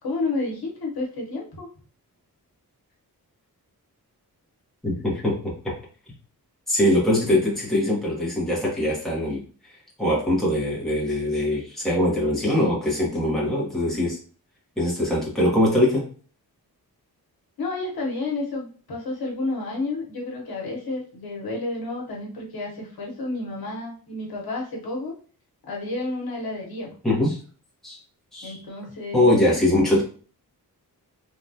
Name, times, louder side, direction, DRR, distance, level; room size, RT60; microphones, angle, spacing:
voice 1, 0.0-1.7 17.6-25.1 25.6-26.9 28.4-29.6, left 2 dB, 70° left, -2 dB, 1.0 m, -31 dB
voice 2, 4.8-5.7 6.7-9.4 10.0-14.2 14.8-16.1 27.0-27.4 27.8-28.0 28.3-28.6 29.1-30.0, left 1 dB, ahead, -5 dB, 0.9 m, -22 dB
3.4 x 2.3 x 2.7 m, 0.41 s
wide cardioid pair, 165°, 38 cm